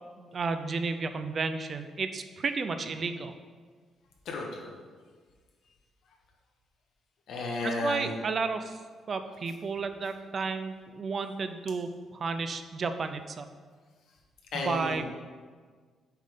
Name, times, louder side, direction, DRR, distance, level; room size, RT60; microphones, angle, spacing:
voice 1, 0.2-3.3 7.6-8.8 9.1-13.5 14.5-15.0, right 4 dB, 40° right, 9 dB, 0.4 m, -32 dB
voice 2, 4.2-4.7 7.3-8.1 14.5-15.0, left 2 dB, 70° left, 1 dB, 1.3 m, -33 dB
7.4 x 3.6 x 5.1 m, 1.5 s
cardioid pair, 125°, 0 cm